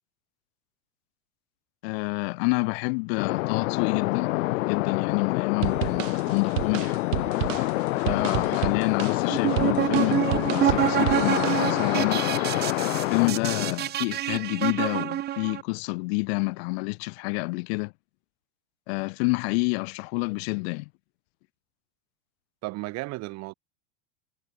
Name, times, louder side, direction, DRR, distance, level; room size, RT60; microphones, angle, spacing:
voice 1, 1.8-4.3 4.6-7.3 8.0-12.3 13.1-17.9 18.9-20.9, left 30 dB, 50° left, 1.2 m, -28 dB
sound 1, 3.2-13.7, left 20 dB, 70° left, 0.7 m, -27 dB
sound 2, 5.6-12.1, right 18 dB, 70° right, 2.9 m, -32 dB
voice 2, 8.0-8.5 22.6-23.5, right 21 dB, 40° right, 4.8 m, -35 dB
sound 3, 9.3-15.6, right 13 dB, 25° right, 1.1 m, -27 dB
supercardioid pair, 155°, 40 cm